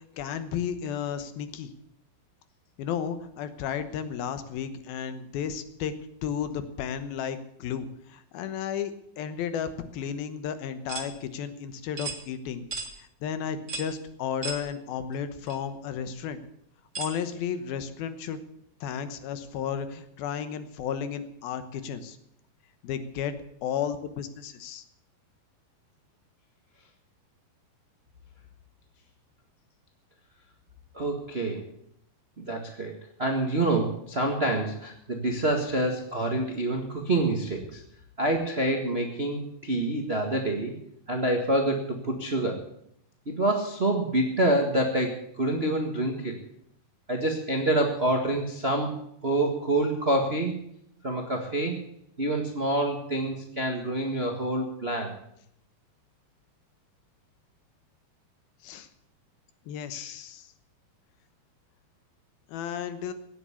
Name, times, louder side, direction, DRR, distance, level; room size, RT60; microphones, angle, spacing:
voice 1, 0.0-1.7 2.8-5.9 6.2-8.9 9.2-12.6 13.0-16.4 17.0-18.4 18.8-22.2 22.8-23.3 23.6-24.8 58.6-58.9 59.7-60.5 62.5-63.1, left 8 dB, 75° left, 11 dB, 2.9 m, -33 dB
sound 1, 10.9-11.1 12.0-12.2 12.7-12.9 13.7-13.9 14.4-14.6 15.5-15.6 16.9-17.2, right 4 dB, 50° right, 0.9 m, -34 dB
voice 2, 30.9-31.6 32.4-37.8 38.2-40.7 41.1-42.6 43.3-46.3 47.1-48.9 49.2-50.6 51.0-51.8 52.2-55.1 59.9-60.1, right 1 dB, 85° right, 2 dB, 0.5 m, -27 dB
17.0 x 8.2 x 8.4 m, 0.73 s
omnidirectional pair, 4.4 m